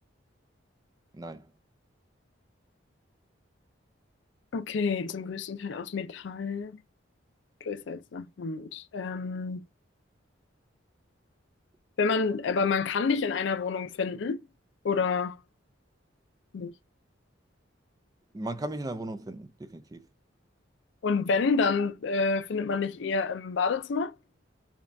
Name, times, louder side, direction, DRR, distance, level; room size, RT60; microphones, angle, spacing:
voice 1, 1.1-1.5 18.3-20.1, right 1 dB, 20° right, 0.4 m, -37 dB
voice 2, 4.5-6.8 7.6-9.6 12.0-14.4 14.8-15.4 16.5-16.7 21.0-24.1, left 4 dB, 70° left, 0.4 m, -28 dB
5.3 x 2.3 x 2.5 m
head